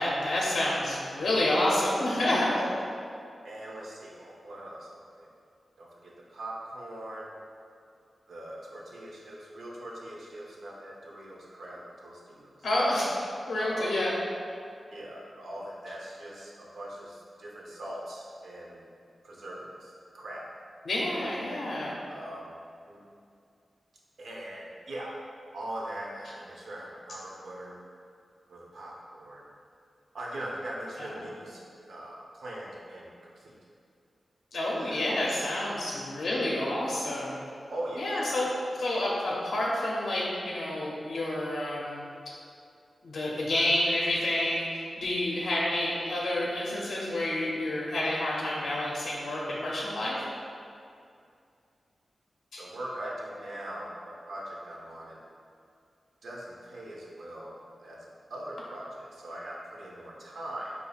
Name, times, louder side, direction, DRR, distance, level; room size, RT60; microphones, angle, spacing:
voice 1, 0.0-2.5 12.6-13.2 13.5-14.1 20.8-21.9 31.0-31.2 34.5-37.4 38.0-38.5 38.8-42.0 43.0-50.2 52.5-52.6, left 1 dB, 75° left, -5 dB, 0.5 m, -29 dB
voice 2, 2.5-2.9 3.4-5.3 5.8-7.3 8.3-12.6 13.6-14.0 14.9-18.8 19.2-20.5 21.1-21.7 22.1-22.6 22.9-23.0 24.2-25.1 25.5-27.8 28.5-29.4 30.1-33.6 34.8-35.1 35.6-36.0 37.7-38.4 52.6-55.2 56.2-57.5 57.8-60.7, right 1 dB, 70° right, -4 dB, 0.6 m, -41 dB
4.9 x 2.6 x 2.3 m, 2.4 s
wide cardioid pair, 175°, 0 cm